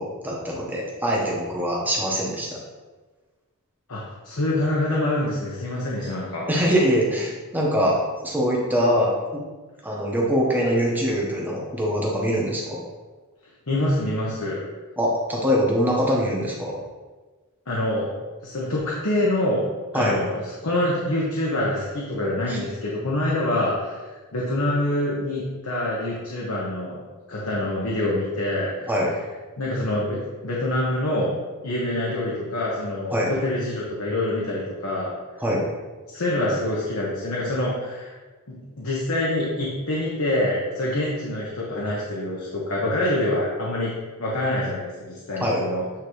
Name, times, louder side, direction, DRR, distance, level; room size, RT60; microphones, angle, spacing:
voice 1, 0.0-2.6 6.5-9.4 9.8-12.8 15.0-16.8 19.9-20.2 22.5-22.6 28.9-29.1 33.1-33.3 35.4-35.6 45.4-45.6, equal, 10° right, -3 dB, 1.2 m, -23 dB
voice 2, 3.9-6.4 13.7-14.6 17.7-18.1 18.4-19.6 19.9-24.0 24.3-27.0 27.3-28.9 29.6-31.3 31.6-35.1 36.1-38.1 38.5-43.9 44.2-45.8, left 1 dB, 80° left, -5 dB, 1.1 m, -26 dB
8.8 x 3.7 x 3.2 m, 1.3 s
head